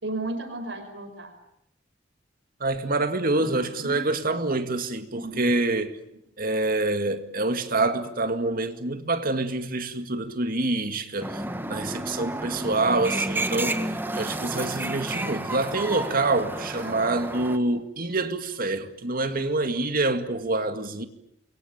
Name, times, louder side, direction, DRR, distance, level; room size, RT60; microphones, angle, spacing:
voice 1, 0.0-1.3 3.3-4.2 5.2-5.4, right 2 dB, 70° right, 5.1 m, -34 dB
voice 2, 2.6-6.0 6.4-11.4 11.7-13.8 14.2-21.0, right 2 dB, 50° right, 2.2 m, -26 dB
sound 1, 11.2-17.6, right 1 dB, 10° right, 1.6 m, -31 dB
28.0 x 23.0 x 8.9 m
head